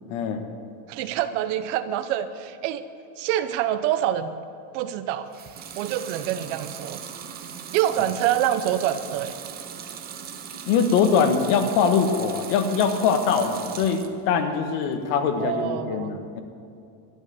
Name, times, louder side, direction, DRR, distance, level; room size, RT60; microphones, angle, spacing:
voice 1, 0.1-0.4 10.7-16.4, left 6 dB, 50° left, 6 dB, 1.6 m, -22 dB
voice 2, 0.9-2.8 3.2-4.3 4.7-5.3 5.8-7.0 7.7-9.3 15.4-16.2, right 11 dB, 50° right, 12 dB, 0.8 m, -26 dB
Water tap faucet / Sink (filling or washing) / Liquid, 5.3-14.2 14.6-15.3, right 8 dB, 20° right, 0.7 m, -39 dB
12.5 x 11.5 x 6.9 m, 2.6 s
supercardioid pair, 160°, 47 cm